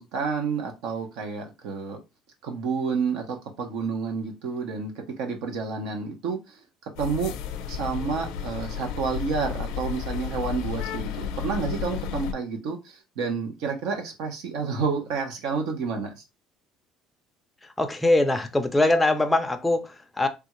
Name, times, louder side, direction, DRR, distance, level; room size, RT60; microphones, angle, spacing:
voice 1, 0.0-2.0 2.4-4.9 5.2-6.4 7.0-7.3 7.7-16.2, right 5 dB, 75° right, 0.9 m, -29 dB
sound 1, 7.0-12.3, left 8 dB, 85° left, 0.6 m, -32 dB
voice 2, 17.8-20.3, left 2 dB, 10° left, 0.4 m, -22 dB
3.4 x 2.4 x 3.0 m
cardioid pair, 145°, 0 cm